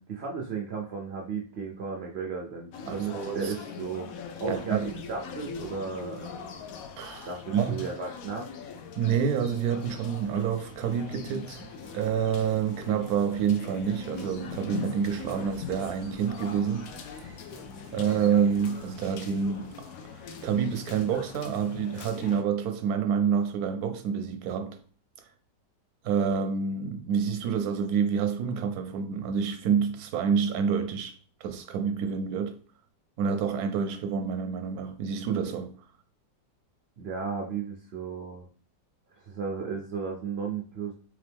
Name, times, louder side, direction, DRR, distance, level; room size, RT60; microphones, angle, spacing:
voice 1, 0.0-4.1 4.4-6.5 7.3-8.5 37.0-38.5 39.1-40.9, right 5 dB, 85° right, 0.5 m, -35 dB
sound 1, 2.7-22.4, left 6 dB, 70° left, 0.8 m, -42 dB
voice 2, 2.9-3.5 4.5-4.9 7.0-7.8 9.0-11.6 11.9-16.9 17.9-19.9 20.2-24.8 26.0-31.1 31.4-32.6 33.2-35.7, right 7 dB, 70° right, 0.9 m, -28 dB
sound 2, 9.4-20.4, equal, 35° right, 0.7 m, -52 dB
3.7 x 3.4 x 3.4 m
omnidirectional pair, 1.9 m